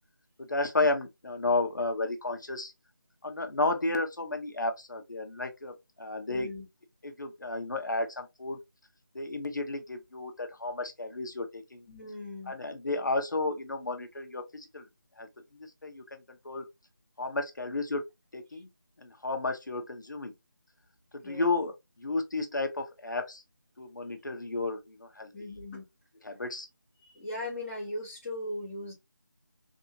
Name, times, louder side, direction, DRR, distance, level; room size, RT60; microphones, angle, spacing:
voice 1, 0.4-2.7 3.2-6.5 7.0-8.6 9.1-11.8 12.5-14.8 15.2-15.3 15.8-16.6 17.2-18.0 18.3-18.7 19.0-20.3 21.1-23.4 23.8-25.5 26.2-26.7, left 2 dB, 65° left, 0.9 m, -32 dB
voice 2, 6.3-6.6 11.9-12.5 18.5-18.6 21.2-21.5 25.3-25.8 27.0-28.9, left 1 dB, 5° left, 1.0 m, -38 dB
3.5 x 2.7 x 2.6 m
figure-of-eight pair, 170°, 11 cm